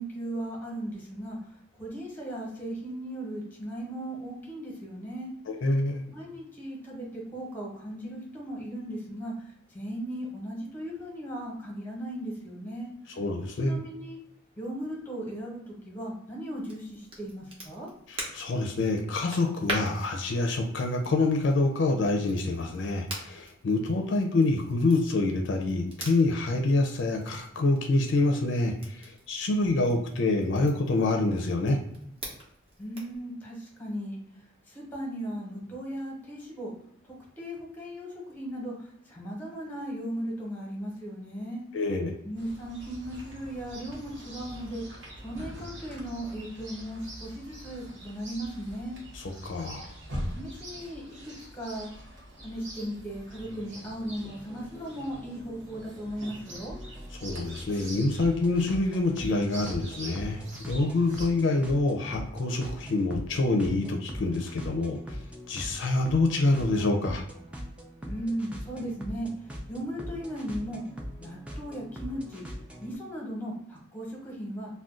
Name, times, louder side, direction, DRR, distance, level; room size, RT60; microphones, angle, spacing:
voice 1, 0.0-1.4 1.8-5.3 6.1-12.9 13.6-14.2 14.6-17.9 32.8-34.2 34.7-36.7 37.0-41.6 42.2-44.8 45.2-49.0 50.3-51.9 52.4-56.7 68.1-69.3 69.7-70.8 71.2-72.4 72.8-74.8, right 1 dB, 10° left, -3 dB, 0.8 m, -37 dB
voice 2, 5.5-6.0 13.2-13.8 18.1-31.8 41.7-42.1 49.4-49.9 57.2-65.0 65.5-67.2, left 2 dB, 65° left, 3 dB, 0.4 m, -26 dB
Crackle, 16.5-33.2, right 1 dB, 30° right, 0.7 m, -44 dB
Chirp tweet, 42.4-61.3, equal, 70° right, 0.9 m, -44 dB
sound 1, 53.3-73.0, equal, 5° right, 0.3 m, -42 dB
2.4 x 2.2 x 3.6 m, 0.77 s
head